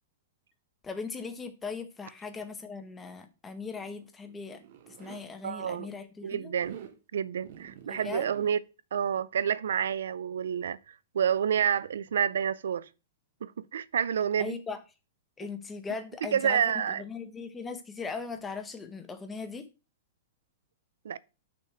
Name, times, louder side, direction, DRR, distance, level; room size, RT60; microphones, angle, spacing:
voice 1, 0.8-4.6 5.0-6.5 7.9-8.3 14.4-14.8 15.4-16.7 17.0-19.7, left 5 dB, 10° left, 0.8 m, -39 dB
Zipper (clothing), 3.6-5.2 6.5-7.0 7.4-8.5, right 9 dB, 55° right, 1.0 m, -48 dB
voice 2, 5.4-5.9 6.2-6.8 7.1-8.6 8.9-10.8 11.1-12.9 13.4-14.6 16.3-17.0 21.0-21.2, right 8 dB, 85° right, 0.4 m, -28 dB
6.1 x 3.5 x 5.6 m
hypercardioid pair, 155°, 0 cm